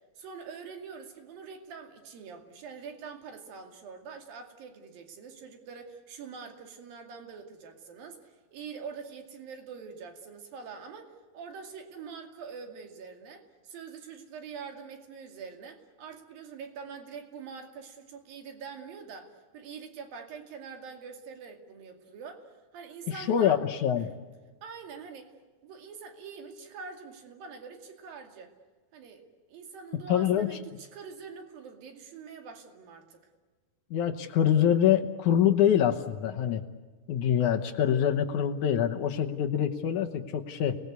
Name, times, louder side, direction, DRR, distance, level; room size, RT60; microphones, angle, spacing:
voice 1, 0.2-23.6 24.0-24.2 24.6-25.3 25.6-28.5 28.9-33.2, right 5 dB, 65° right, 5 dB, 4.1 m, -44 dB
voice 2, 23.1-24.1 30.1-30.6 33.9-36.6 37.1-40.8, left 9 dB, 70° left, 5 dB, 2.0 m, -25 dB
30.0 x 20.0 x 8.2 m, 1.4 s
omnidirectional pair, 4.5 m